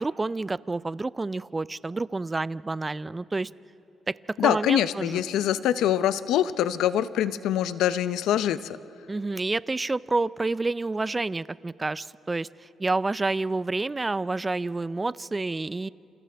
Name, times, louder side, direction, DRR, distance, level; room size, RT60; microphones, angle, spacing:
voice 1, 0.0-3.5 4.1-4.2 4.4-5.2 9.1-12.5 12.8-15.9, right 3 dB, 20° right, 18 dB, 0.4 m, -29 dB
voice 2, 4.4-8.8, left 11 dB, 85° left, 14 dB, 0.6 m, -24 dB
29.0 x 28.5 x 3.4 m, 3.0 s
cardioid pair, 90°, 0 cm